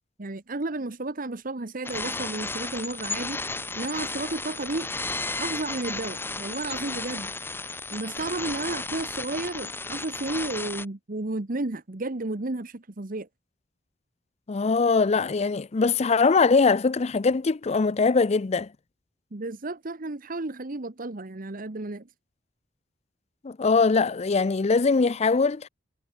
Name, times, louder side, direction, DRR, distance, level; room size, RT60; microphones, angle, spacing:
voice 1, 0.2-3.4 3.8-4.9 5.4-7.3 7.9-13.3 19.3-22.1, right 2 dB, 50° right, 1.2 m, -32 dB
sound 1, 1.8-10.8, left 3 dB, 15° left, 1.0 m, -33 dB
voice 2, 14.5-18.7 23.4-25.7, left 4 dB, 35° left, 0.5 m, -22 dB
head